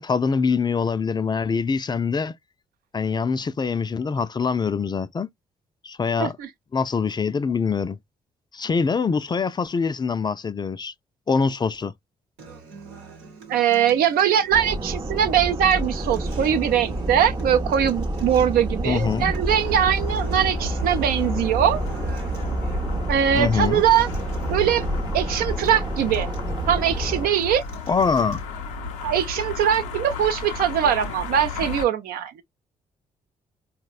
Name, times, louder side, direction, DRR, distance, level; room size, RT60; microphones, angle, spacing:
voice 1, 0.0-2.4 2.9-5.3 5.8-6.3 6.7-8.0 8.5-10.9 11.3-11.9 18.8-19.3 23.3-23.8 27.9-28.4, left 5 dB, 30° left, 0.3 m, -24 dB
voice 2, 6.2-6.5 13.5-21.8 23.1-24.1 24.5-24.9 25.1-26.3 26.7-27.6 29.0-32.3, right 9 dB, 70° right, 0.5 m, -21 dB
Acoustic guitar, 12.4-28.4, right 5 dB, 85° right, 1.0 m, -45 dB
sound 1, 14.5-27.3, right 1 dB, 25° right, 0.6 m, -28 dB
sound 2, 19.5-31.9, left 5 dB, 85° left, 0.5 m, -34 dB
4.0 x 2.0 x 2.3 m
hypercardioid pair, 45°, 16 cm